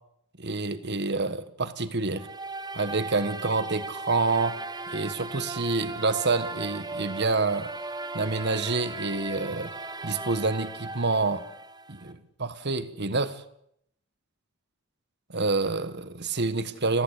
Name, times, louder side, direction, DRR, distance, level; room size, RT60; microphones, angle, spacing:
voice 1, 0.4-2.3 2.7-4.6 4.9-7.7 8.1-9.7 10.0-11.4 11.9-13.4 15.3-17.0, right 3 dB, 50° right, 12 dB, 1.7 m, -27 dB
sound 1, 2.2-12.1, right 3 dB, 20° right, 1.5 m, -37 dB
29.0 x 14.5 x 8.5 m, 0.75 s
head